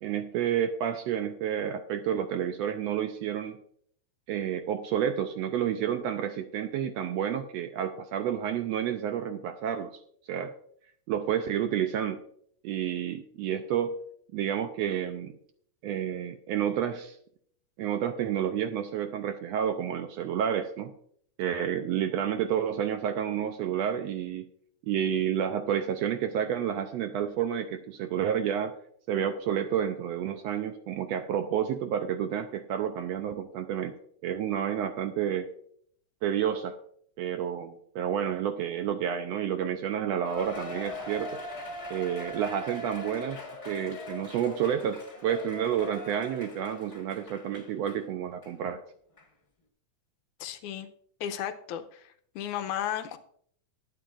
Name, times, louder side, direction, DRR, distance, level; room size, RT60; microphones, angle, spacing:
voice 1, 0.0-3.6 4.3-9.9 10.3-10.5 11.1-12.2 12.6-14.0 14.3-15.4 15.8-17.2 17.8-20.9 21.4-24.5 24.8-28.7 29.1-33.9 34.2-35.5 36.2-36.8 37.2-41.4 41.9-48.8, right 9 dB, 75° right, 7 dB, 1.6 m, -30 dB
Cheering, 40.2-48.0 48.4-48.5 49.2-49.3, left 1 dB, 25° left, 0.6 m, -41 dB
voice 2, 50.4-50.9 51.2-53.2, left 10 dB, 90° left, 8 dB, 2.2 m, -34 dB
20.0 x 8.8 x 2.5 m, 0.64 s
omnidirectional pair, 3.4 m